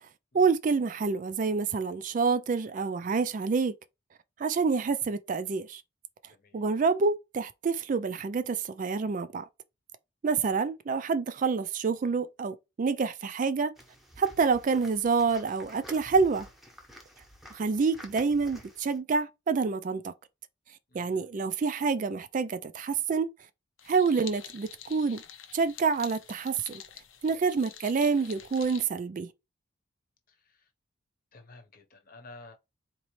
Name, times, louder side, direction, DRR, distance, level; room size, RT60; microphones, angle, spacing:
voice 1, 0.3-3.8 4.4-5.8 6.5-9.5 10.2-13.7 14.2-16.5 17.5-20.1 20.9-23.3 23.9-25.2 25.5-26.8 27.2-29.3, right 5 dB, 40° right, 0.3 m, -27 dB
voice 2, 6.3-6.7 20.9-21.4 27.3-27.4 30.3-30.7 31.3-32.5, left 2 dB, 45° left, 0.9 m, -52 dB
sound 1, 13.8-19.0, equal, ahead, 0.9 m, -50 dB
sound 2, 23.8-28.8, left 9 dB, 70° left, 0.7 m, -47 dB
4.1 x 2.9 x 3.1 m
head